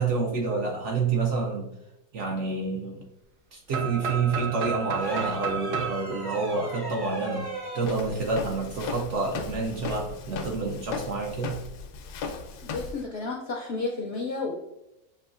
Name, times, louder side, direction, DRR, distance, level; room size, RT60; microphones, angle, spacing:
voice 1, 0.0-1.7 2.1-3.1 3.5-11.6, right 4 dB, 65° right, 1 dB, 0.8 m, -28 dB
sound 1, 3.7-7.5, right 6 dB, 85° right, 1.2 m, -33 dB
sound 2, 5.0-7.9 9.6-9.8, right 2 dB, 25° right, 0.5 m, -37 dB
Walk footsteps, 7.8-13.0, left 4 dB, 85° left, 1.2 m, -37 dB
voice 2, 12.6-14.6, left 3 dB, 65° left, 0 dB, 0.6 m, -32 dB
6.8 x 2.8 x 2.4 m, 0.91 s
omnidirectional pair, 1.7 m